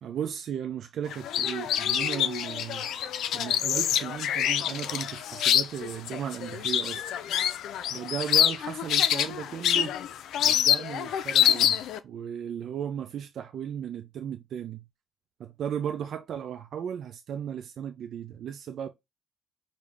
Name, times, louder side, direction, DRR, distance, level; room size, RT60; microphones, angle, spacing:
voice 1, 0.0-2.9 3.3-7.1 7.9-10.0 10.4-14.8 15.4-18.9, right 9 dB, 65° right, 0.5 m, -35 dB
sound 1, 1.1-12.0, left 10 dB, 80° left, 0.5 m, -26 dB
4.9 x 2.7 x 3.4 m
cardioid pair, 90°, 0 cm